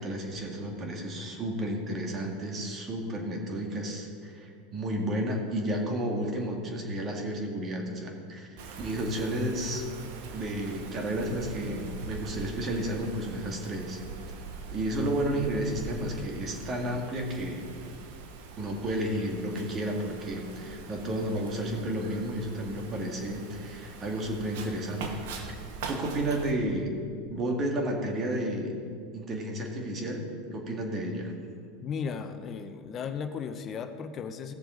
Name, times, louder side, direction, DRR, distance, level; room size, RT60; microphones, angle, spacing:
voice 1, 0.0-8.5 8.8-9.8 10.3-14.0 14.7-17.7 18.6-25.2 25.9-26.9 27.3-28.7 29.1-31.3, right 1 dB, 35° right, 2 dB, 2.1 m, -32 dB
Wind, 8.6-26.5, right 4 dB, 70° right, 1.2 m, -43 dB
voice 2, 31.8-34.5, left 6 dB, 35° left, 8 dB, 0.9 m, -35 dB
16.5 x 6.9 x 4.0 m, 2.2 s
hypercardioid pair, 100°, 0 cm